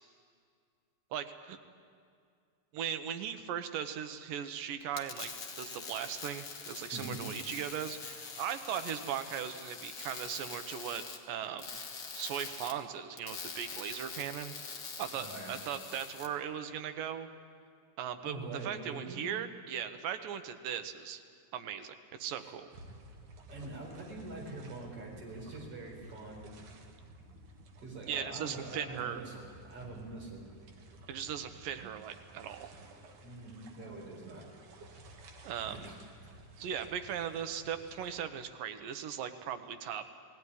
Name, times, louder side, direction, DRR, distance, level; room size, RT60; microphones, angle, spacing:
voice 1, 1.1-1.6 2.7-11.7 12.1-17.3 18.0-21.2 21.5-22.7 28.1-29.2 31.1-32.7 35.4-35.9 36.6-40.0, right 9 dB, 85° right, 9 dB, 2.6 m, -38 dB
sound 1, 4.8-16.3, left 5 dB, 45° left, 1.6 m, -44 dB
voice 2, 15.2-15.5 18.2-19.2 23.5-26.5 27.8-30.4 33.2-34.5 35.7-35.9 36.2-36.4, right 2 dB, 45° right, -2 dB, 5.1 m, -44 dB
sound 2, 22.7-38.2, right 1 dB, 65° right, 3.0 m, -54 dB
20.0 x 15.5 x 9.8 m, 2.2 s
omnidirectional pair, 3.9 m